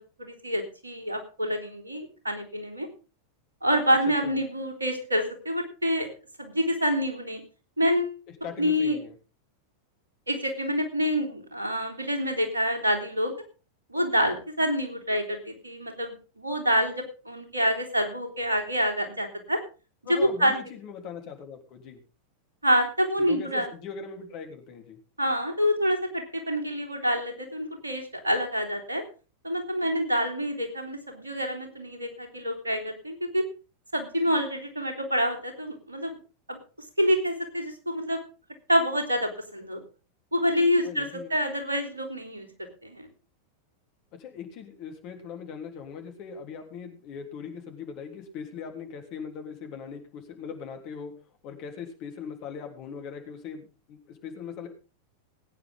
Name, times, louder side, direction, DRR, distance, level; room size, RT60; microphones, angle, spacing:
voice 1, 0.0-2.9 3.6-6.1 6.4-7.4 7.8-8.2 8.6-9.0 10.3-13.3 13.9-19.6 20.1-20.5 22.6-23.7 25.2-29.0 29.4-33.4 33.9-36.2 36.5-36.6 37.0-38.2 38.7-39.8 40.3-42.5 42.8-43.1, equal, 80° right, 3 dB, 3.4 m, -27 dB
voice 2, 8.4-9.1 20.1-22.0 23.2-25.0 40.8-41.3 44.2-51.1 51.4-54.7, left 6 dB, 40° left, 4 dB, 3.6 m, -40 dB
20.0 x 9.6 x 3.8 m, 0.34 s
figure-of-eight pair, 90°, 0 cm